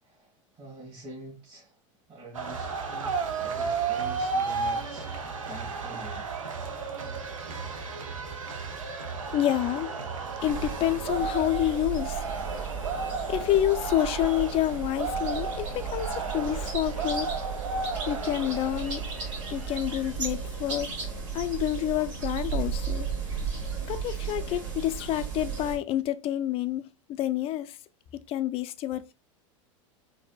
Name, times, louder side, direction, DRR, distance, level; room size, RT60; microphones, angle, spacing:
voice 1, 0.0-1.7 2.1-6.3, right 2 dB, 35° right, 1.8 m, -46 dB
sound 1, 2.3-20.1, right 4 dB, 85° right, 0.6 m, -33 dB
voice 2, 9.3-10.0 10.4-12.2 12.5-12.8 13.3-17.3 18.1-19.0 19.5-20.9 21.3-23.1 23.9-27.8 28.3-29.1, left 12 dB, 35° left, 0.4 m, -28 dB
sound 2, 10.4-25.8, right 6 dB, 65° right, 1.4 m, -35 dB
4.0 x 2.6 x 2.2 m
hypercardioid pair, 90°, 17 cm